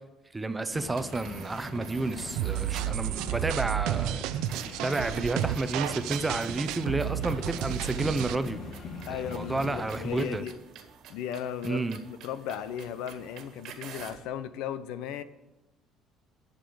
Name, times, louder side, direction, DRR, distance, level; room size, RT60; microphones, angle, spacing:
voice 1, 0.3-4.3 4.8-8.6 9.1-10.4 11.6-12.0, right 3 dB, 10° right, 0.6 m, -31 dB
sound 1, 0.7-10.4, left 4 dB, 50° left, 1.4 m, -43 dB
sound 2, 0.9-3.1 4.5-14.3, right 7 dB, 60° right, 1.6 m, -49 dB
sound 3, 2.4-8.4, right 13 dB, 90° right, 0.6 m, -32 dB
voice 2, 9.1-10.6 11.1-15.2, left 9 dB, 85° left, 0.7 m, -36 dB
11.0 x 6.8 x 6.9 m
cardioid pair, 160°, 0 cm